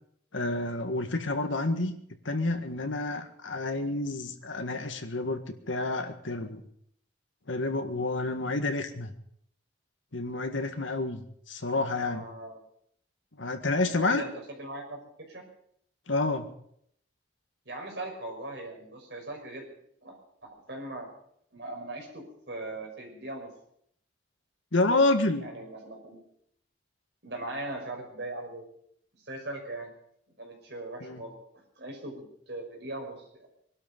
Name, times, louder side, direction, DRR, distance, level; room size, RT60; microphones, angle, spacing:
voice 1, 0.3-2.0 2.3-6.6 7.5-9.1 10.1-12.2 13.4-14.2 16.1-16.5 24.7-25.5 31.0-31.2, left 2 dB, 85° left, 6 dB, 1.7 m, -29 dB
voice 2, 12.0-12.6 13.8-14.3 14.6-15.0 15.3-15.5 17.7-19.7 20.0-21.1 21.5-23.5 25.4-26.2 27.2-28.7 29.2-29.9 30.4-31.3 31.8-33.3, right 2 dB, 60° right, 1 dB, 5.6 m, -39 dB
22.5 x 12.0 x 5.3 m, 0.69 s
head